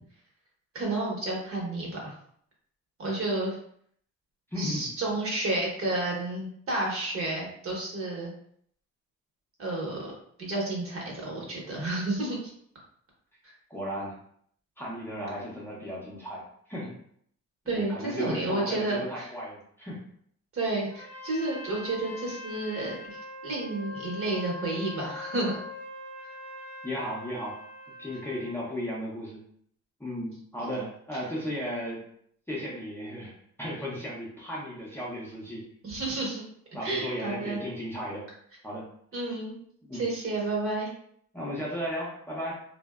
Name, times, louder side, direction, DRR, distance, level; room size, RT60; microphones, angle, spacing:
voice 1, 0.7-2.1 3.0-3.6 4.6-8.3 9.6-10.1 10.4-12.4 13.4-13.5 17.7-19.3 20.5-25.6 30.6-30.8 35.8-36.4 36.8-37.6 39.1-39.6 39.9-40.9, right 2 dB, 45° right, -2 dB, 1.0 m, -31 dB
voice 2, 4.5-4.9 13.7-14.2 14.8-16.4 16.7-16.9 17.7-20.0 26.8-27.6 28.0-29.4 30.0-32.0 32.5-35.6 36.7-38.3 38.6-38.9 39.8-40.0 41.3-42.5, equal, 10° left, -6 dB, 0.6 m, -35 dB
Trumpet, 20.9-28.6, left 2 dB, 25° left, 0.9 m, -42 dB
2.6 x 2.1 x 2.3 m, 0.65 s
cardioid pair, 90°, 30 cm